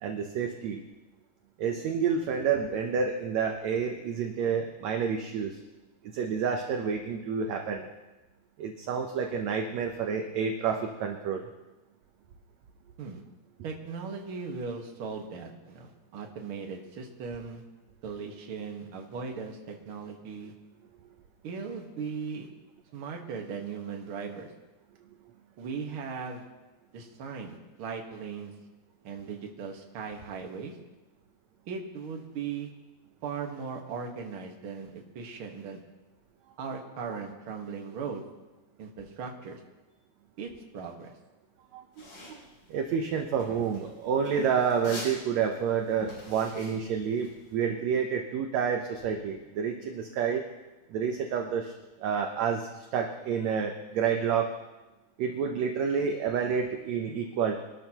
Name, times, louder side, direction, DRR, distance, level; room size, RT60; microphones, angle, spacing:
voice 1, 0.0-0.8 1.6-5.6 6.1-7.8 8.6-11.4 41.7-42.4 42.7-50.4 50.9-51.7 52.0-54.5 55.2-57.6, right 6 dB, 70° right, 4 dB, 1.7 m, -29 dB
voice 2, 13.6-17.6 18.0-20.5 21.4-22.5 22.9-24.5 25.6-26.4 26.9-28.6 29.0-30.8 31.7-32.7 33.2-35.8 36.6-38.2 38.8-39.6 40.4-41.1, right 5 dB, 50° right, 2 dB, 1.8 m, -38 dB
sound 1, 41.9-47.5, equal, 80° left, 6.9 m, -44 dB
24.0 x 12.5 x 3.0 m, 1.1 s
omnidirectional pair, 4.1 m